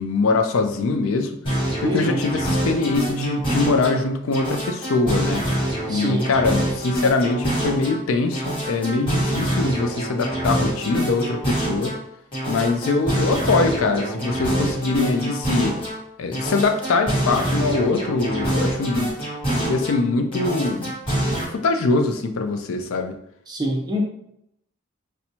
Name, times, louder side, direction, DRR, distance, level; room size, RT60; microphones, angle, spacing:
voice 1, 0.0-1.4 1.8-5.4 5.9-12.0 12.5-15.8 16.2-19.1 19.5-20.9 21.5-23.1, left 3 dB, 75° left, 6 dB, 0.4 m, -22 dB
sound 1, 1.4-4.0 4.3-8.0 8.3-12.0 12.3-16.0 16.3-20.0 20.3-21.4, right 1 dB, 25° left, 1.2 m, -25 dB
voice 2, 1.8-2.2 5.9-6.3 23.5-24.0, equal, 20° right, 1 dB, 0.5 m, -24 dB
4.3 x 2.2 x 2.7 m, 0.76 s
head